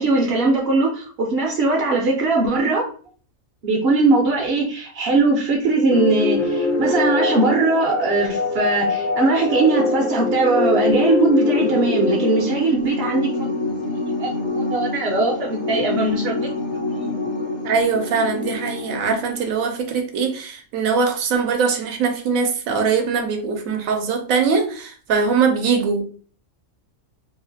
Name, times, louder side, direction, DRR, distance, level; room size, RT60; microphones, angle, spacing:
voice 1, 0.0-2.9 3.6-13.3 14.2-16.5 16.9-17.2, right 3 dB, 55° right, 0.8 m, -20 dB
sound 1, 5.9-19.6, left 3 dB, 60° left, 0.5 m, -24 dB
voice 2, 17.6-26.0, right 5 dB, 75° right, 1.0 m, -21 dB
3.0 x 2.4 x 2.5 m
omnidirectional pair, 1.5 m